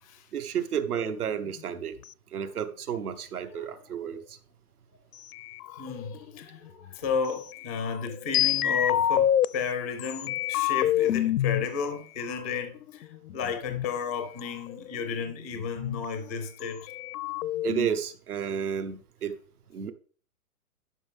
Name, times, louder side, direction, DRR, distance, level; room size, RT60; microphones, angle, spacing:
voice 1, 0.3-2.0 2.3-4.4 17.6-19.4 19.7-19.9, right 8 dB, 75° right, 1.4 m, -31 dB
sound 1, 0.9-1.6 5.3-6.7 7.5-9.4 10.0-11.6 12.5-13.8 14.4-14.5 14.7-16.0 16.6-16.7 16.9-17.9, left 11 dB, 75° left, 0.6 m, -27 dB
voice 2, 5.7-16.9, left 6 dB, 10° left, 0.4 m, -33 dB
12.0 x 5.6 x 3.6 m
hypercardioid pair, 155°, 45 cm